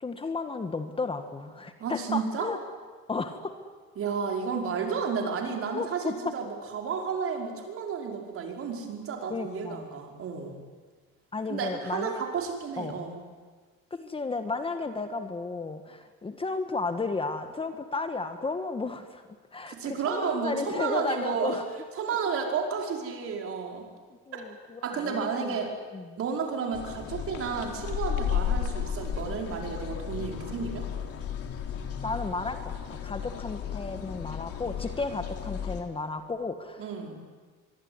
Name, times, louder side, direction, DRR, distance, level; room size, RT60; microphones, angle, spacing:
voice 1, 0.0-2.6 3.1-3.5 5.7-6.3 9.3-9.9 11.3-12.2 12.8-13.1 13.9-19.2 19.5-21.6 24.3-25.6 25.9-26.2 32.0-36.8, left 3 dB, 20° left, 8 dB, 1.6 m, -33 dB
voice 2, 1.8-2.5 4.0-10.5 11.5-13.1 19.7-21.6 22.0-23.9 24.3-24.5 24.8-25.7 26.2-30.9 36.8-37.2, right 5 dB, 45° right, 2 dB, 5.3 m, -32 dB
sound 1, 26.7-35.8, left 8 dB, 50° left, 3.5 m, -34 dB
24.5 x 23.0 x 9.7 m, 1.4 s
cardioid pair, 130°, 30 cm